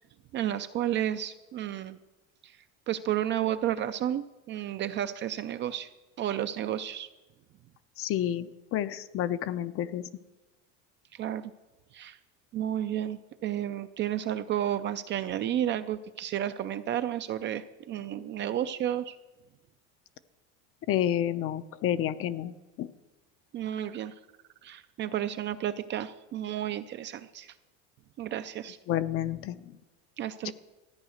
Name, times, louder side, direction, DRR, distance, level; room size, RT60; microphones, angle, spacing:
voice 1, 0.3-2.0 2.9-5.9 6.2-7.1 11.2-11.5 11.9-12.2 12.5-19.2 23.5-24.1 24.6-27.5 28.2-28.8 30.2-30.5, right 11 dB, 30° right, 11 dB, 0.4 m, -32 dB
voice 2, 8.0-10.0 20.9-22.5 22.8-22.9 28.9-29.6 30.4-30.5, left 11 dB, 40° left, 13 dB, 0.5 m, -29 dB
14.0 x 9.1 x 6.4 m, 1.1 s
cardioid pair, 150°, 37 cm